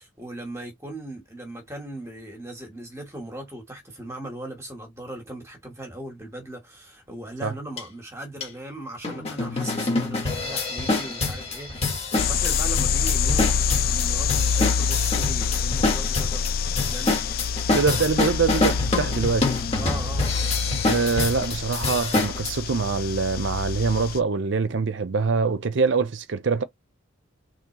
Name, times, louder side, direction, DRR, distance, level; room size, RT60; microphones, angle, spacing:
voice 1, 0.0-13.5 13.9-16.5 16.8-17.2 19.7-20.3, right 1 dB, 15° right, 1.3 m, -38 dB
sound 1, 7.8-7.9 8.4-8.5 9.0-22.5, left 3 dB, 30° left, 1.4 m, -26 dB
sound 2, 12.2-24.2, left 6 dB, 45° left, 0.3 m, -26 dB
voice 2, 17.7-19.6 20.9-26.6, right 4 dB, 60° right, 0.5 m, -24 dB
3.8 x 3.2 x 2.9 m
head